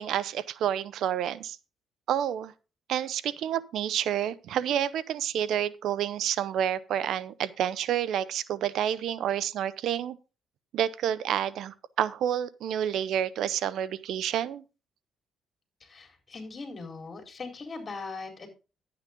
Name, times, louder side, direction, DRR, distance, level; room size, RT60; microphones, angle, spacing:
voice 1, 0.0-1.6 2.1-2.5 2.9-10.2 10.7-14.6, right 10 dB, 75° right, 0.7 m, -29 dB
voice 2, 15.8-18.5, left 4 dB, 35° left, 4.1 m, -40 dB
11.0 x 8.7 x 3.7 m
cardioid pair, 90°, 0 cm